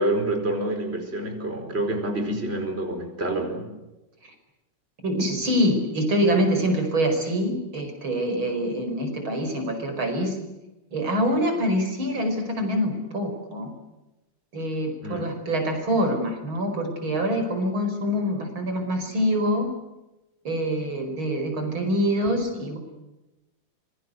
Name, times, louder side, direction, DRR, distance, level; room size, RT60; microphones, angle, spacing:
voice 1, 0.0-3.7 15.0-15.3, right 1 dB, 30° right, 6 dB, 5.2 m, -27 dB
voice 2, 5.0-10.4 10.9-13.7 14.5-19.7 20.4-22.8, equal, 85° right, 5 dB, 6.0 m, -25 dB
26.0 x 23.0 x 8.1 m, 0.98 s
omnidirectional pair, 2.2 m